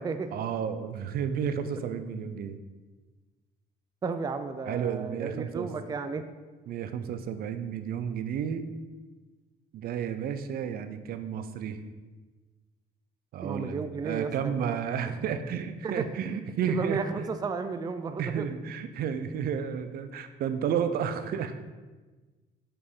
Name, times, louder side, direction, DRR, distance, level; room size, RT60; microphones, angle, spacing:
voice 1, 0.3-2.6 4.6-5.7 6.7-8.7 9.7-11.8 13.3-17.0 18.2-21.5, right 7 dB, 65° right, 10 dB, 0.7 m, -32 dB
voice 2, 4.0-6.2 13.4-14.7 15.1-15.3 15.8-16.1 16.6-18.5, right 5 dB, 25° right, 9 dB, 0.4 m, -33 dB
6.6 x 5.5 x 5.5 m, 1.3 s
cardioid pair, 110°, 17 cm